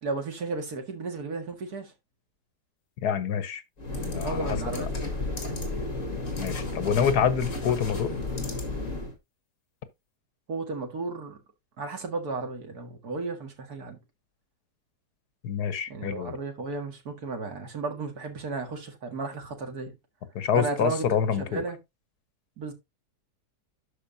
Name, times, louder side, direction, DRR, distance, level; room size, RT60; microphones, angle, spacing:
voice 1, 0.0-1.9 3.9-5.8 10.5-11.4 11.8-14.0 15.9-19.9 20.5-21.1 21.4-21.8 22.6-22.7, right 3 dB, 70° right, 2.3 m, -34 dB
voice 2, 3.0-3.6 4.1-4.9 6.3-8.1 15.4-16.4 20.3-21.6, left 8 dB, 75° left, 1.4 m, -27 dB
sound 1, 3.8-9.1, left 2 dB, 50° left, 2.3 m, -32 dB
12.0 x 4.9 x 2.6 m
omnidirectional pair, 1.7 m